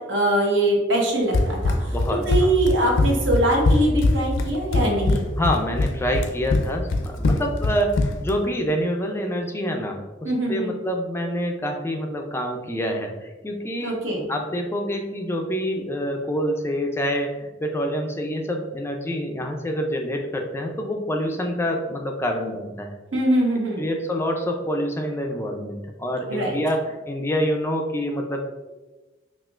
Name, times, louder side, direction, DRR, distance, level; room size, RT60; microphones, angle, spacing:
voice 1, 0.1-1.9 2.3-5.3 10.2-10.7 13.8-14.3 23.1-23.8 26.3-26.6, right 1 dB, 75° right, -1 dB, 1.0 m, -22 dB
Run, 1.3-8.4, left 2 dB, 80° left, 0.4 m, -22 dB
voice 2, 1.9-2.5 5.4-14.0 14.3-23.0 23.8-28.5, equal, 15° left, 2 dB, 0.3 m, -27 dB
5.6 x 2.4 x 2.4 m, 1.2 s
head